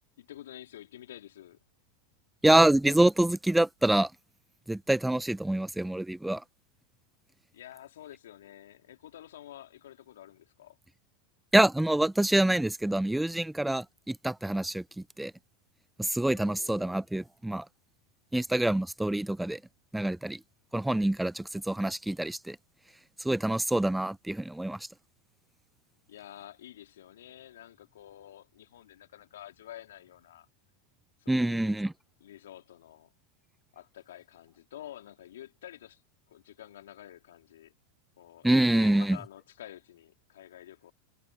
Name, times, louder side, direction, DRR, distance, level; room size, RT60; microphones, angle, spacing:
voice 1, 0.2-1.6 7.5-10.8 16.2-17.0 26.1-30.5 31.2-31.8 32.2-33.1 33.7-36.0 36.3-37.7 38.2-38.5 38.7-40.9, left 12 dB, 75° left, 3.2 m, -49 dB
voice 2, 2.4-4.1 4.7-6.4 11.5-14.8 15.2-15.3 16.0-17.6 18.3-19.6 19.9-20.4 20.7-22.6 23.2-24.8 31.3-31.9 38.4-39.2, right 1 dB, 5° right, 0.7 m, -26 dB
hypercardioid pair, 100°, 0 cm